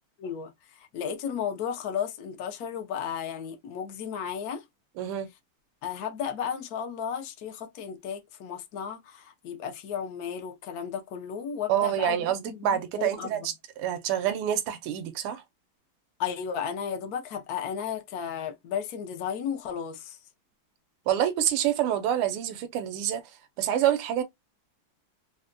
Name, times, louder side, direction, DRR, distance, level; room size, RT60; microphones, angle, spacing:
voice 1, 0.2-4.6 5.8-12.2 12.5-13.5 16.2-20.2, left 8 dB, 75° left, 0.8 m, -34 dB
voice 2, 5.0-5.3 11.7-15.4 21.1-23.2 23.6-24.2, right 10 dB, 80° right, 1.5 m, -27 dB
4.0 x 2.1 x 2.5 m
omnidirectional pair, 2.4 m